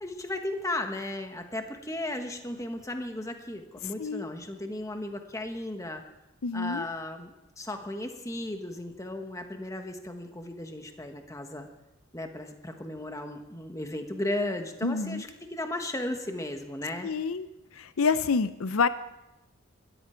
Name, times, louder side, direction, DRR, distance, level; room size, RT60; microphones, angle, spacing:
voice 1, 0.0-6.0 6.5-11.7 12.1-17.1, left 1 dB, 15° left, 5 dB, 1.2 m, -35 dB
voice 2, 6.4-6.9 14.8-15.2 17.0-17.5 17.7-18.9, left 5 dB, 75° left, 13 dB, 0.6 m, -27 dB
20.5 x 13.5 x 4.5 m, 0.92 s
head